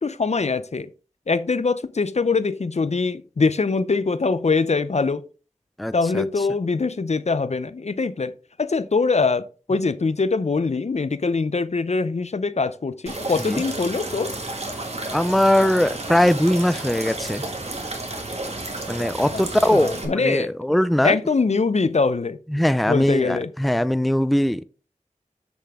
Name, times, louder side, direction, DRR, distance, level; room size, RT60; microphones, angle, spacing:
voice 1, 0.0-0.9 1.3-5.2 5.9-8.3 8.6-14.3 19.3-19.4 19.7-20.5 21.0-22.4 22.9-23.5, left 4 dB, 55° left, 0.6 m, -23 dB
voice 2, 5.8-6.3 13.4-13.6 15.1-17.4 18.9-21.2 22.5-24.6, left 1 dB, ahead, 0.5 m, -21 dB
sound 1, 13.1-20.1, right 2 dB, 50° right, 2.0 m, -31 dB
7.7 x 7.0 x 3.6 m
wide cardioid pair, 50°, 13 cm